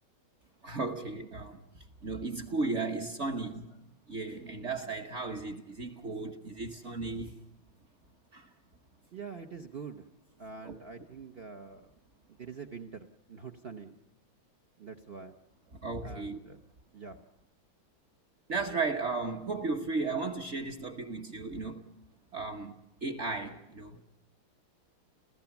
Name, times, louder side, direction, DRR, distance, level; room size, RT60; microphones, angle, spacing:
voice 1, 0.6-1.6 2.0-3.7 4.1-7.4 8.3-8.5 10.6-10.7 15.8-16.4 18.5-21.8 22.3-22.8 23.0-24.0, right 3 dB, 45° right, 1.1 m, -35 dB
voice 2, 9.1-10.1 10.4-12.0 12.3-14.0 14.8-15.4 16.0-16.6 16.9-17.2, right 5 dB, 60° right, 0.6 m, -45 dB
29.5 x 15.5 x 7.0 m
omnidirectional pair, 2.3 m